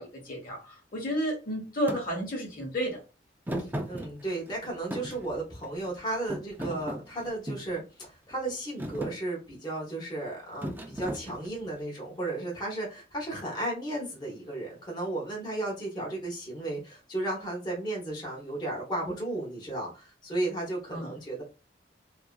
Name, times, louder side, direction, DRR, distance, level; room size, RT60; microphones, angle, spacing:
voice 1, 0.0-3.0 20.9-21.2, equal, 55° left, 0.9 m, -32 dB
Thump thud, 1.9-2.0 3.5-4.5 4.9-5.9 6.3-7.7 8.3-8.5 8.8-9.2 10.6-11.7, equal, 10° right, 0.5 m, -36 dB
voice 2, 3.6-21.4, right 2 dB, 25° left, 0.9 m, -34 dB
2.6 x 2.4 x 2.2 m
head